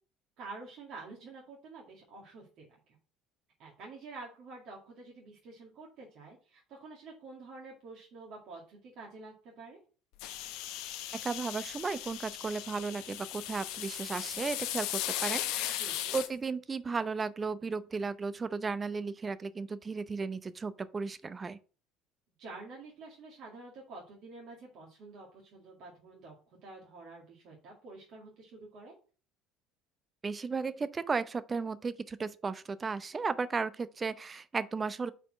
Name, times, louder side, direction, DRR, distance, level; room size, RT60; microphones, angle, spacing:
voice 1, 0.4-2.7 3.6-9.8 15.8-16.2 22.4-26.3 26.6-28.9, right 3 dB, 60° right, 2.1 m, -48 dB
sound 1, 10.2-16.3, left 12 dB, 70° left, 0.7 m, -37 dB
voice 2, 11.2-21.6 30.2-35.1, right 4 dB, 30° right, 0.6 m, -35 dB
5.4 x 4.4 x 6.1 m
hypercardioid pair, 70°, 0 cm